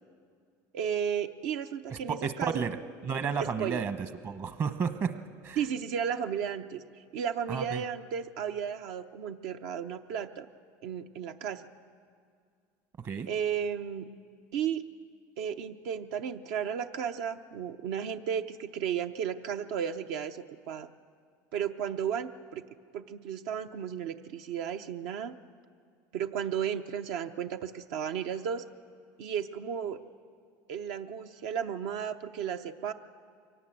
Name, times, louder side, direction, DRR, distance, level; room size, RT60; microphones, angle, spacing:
voice 1, 0.7-2.6 3.4-3.8 5.6-6.8 7.1-10.5 10.8-11.6 13.3-14.1 14.5-14.8 15.4-20.9 21.5-22.6 22.9-25.4 26.1-28.6 29.2-30.0 30.7-32.9, right 8 dB, 75° right, 7 dB, 0.8 m, -34 dB
voice 2, 1.9-2.8 3.0-4.0 4.2-5.1 5.4-5.6 7.5-7.8 13.0-13.3, right 6 dB, 40° right, 10 dB, 1.1 m, -32 dB
23.0 x 18.0 x 7.5 m, 2.2 s
supercardioid pair, 100°, 9 cm